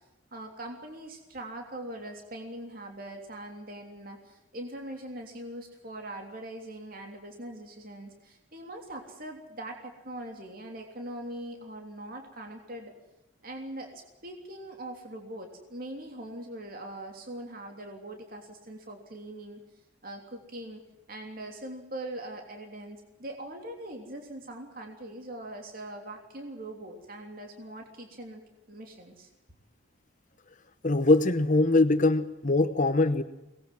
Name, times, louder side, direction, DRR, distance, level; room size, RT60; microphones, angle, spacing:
voice 1, 0.3-12.9 13.4-19.6 20.0-20.8 21.1-28.4 28.7-29.3, right 1 dB, 50° right, 3 dB, 3.3 m, -42 dB
voice 2, 30.8-33.2, left 2 dB, 40° left, 11 dB, 1.0 m, -22 dB
23.0 x 20.0 x 7.6 m, 1.0 s
head